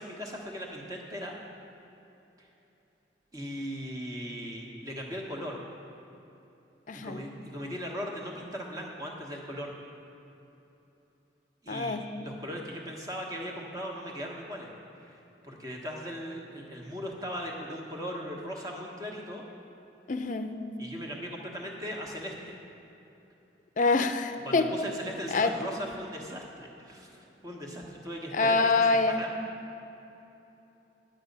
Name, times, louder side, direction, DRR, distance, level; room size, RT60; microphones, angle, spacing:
voice 1, 0.0-1.3 2.4-2.5 3.3-5.6 7.0-9.7 11.6-14.7 14.9-19.4 20.8-22.6 24.4-28.6 29.2-29.3, equal, 20° right, -1 dB, 1.3 m, -38 dB
voice 2, 6.9-7.2 11.7-12.1 20.1-20.6 23.8-24.7 25.3-25.5 28.3-29.2, left 3 dB, 45° left, 8 dB, 0.5 m, -26 dB
9.7 x 9.3 x 5.4 m, 3.0 s
head